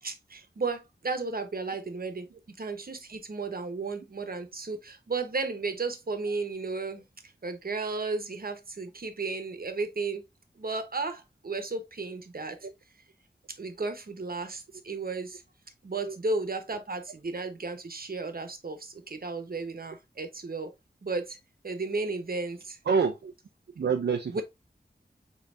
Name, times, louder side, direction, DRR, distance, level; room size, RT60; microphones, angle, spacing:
voice 1, 0.0-2.3 2.6-7.0 7.4-10.2 10.6-12.6 13.5-15.4 15.8-20.7 21.0-21.4 21.6-22.8 24.3-24.4, right 3 dB, 60° right, 1.0 m, -34 dB
voice 2, 22.8-23.3 23.8-24.4, right 5 dB, 75° right, 0.5 m, -27 dB
5.4 x 3.9 x 2.5 m
wide cardioid pair, 70°, 18 cm